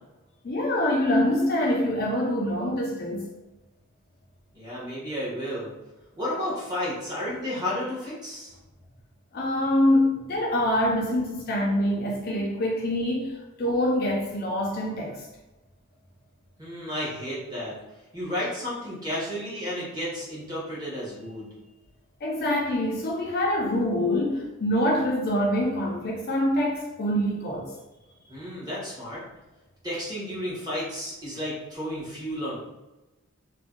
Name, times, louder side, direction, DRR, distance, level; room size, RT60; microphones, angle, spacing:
voice 1, 0.4-3.3 9.3-15.3 22.2-27.7, left 1 dB, 40° left, -1 dB, 0.4 m, -25 dB
voice 2, 4.5-5.7 6.1-8.6 16.6-17.7 18.1-21.5 28.3-29.2 29.8-32.6, left 1 dB, 20° right, -7 dB, 1.0 m, -32 dB
2.5 x 2.2 x 3.6 m, 1.1 s
head